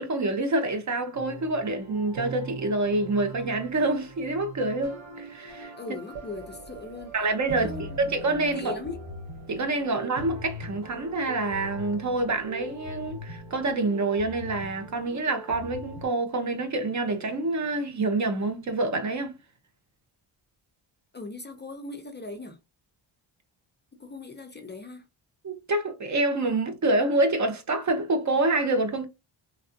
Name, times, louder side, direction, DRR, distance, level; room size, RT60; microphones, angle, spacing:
voice 1, 0.0-5.7 7.1-8.8 9.5-19.3 25.4-29.0, right 2 dB, 35° right, 0.7 m, -27 dB
sound 1, 1.2-16.1, right 2 dB, 80° right, 1.4 m, -41 dB
voice 2, 5.8-7.1 7.5-8.0 8.5-9.0 21.1-22.6 24.0-25.0, left 3 dB, 25° left, 0.5 m, -39 dB
3.2 x 2.5 x 2.6 m
cardioid pair, 125°, 47 cm